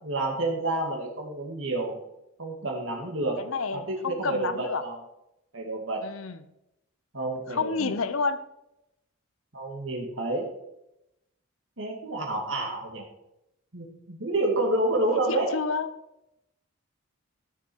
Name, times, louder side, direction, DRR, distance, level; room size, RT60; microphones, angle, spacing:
voice 1, 0.0-2.0 2.4-3.4 3.7-5.0 5.5-6.0 7.1-7.9 9.5-10.5 11.8-13.0 13.7-15.5, right 2 dB, 65° right, -1 dB, 2.2 m, -29 dB
voice 2, 3.4-4.8 6.0-6.4 7.5-8.4 15.3-16.0, left 4 dB, 85° left, 13 dB, 0.8 m, -29 dB
14.0 x 6.9 x 4.6 m, 0.85 s
head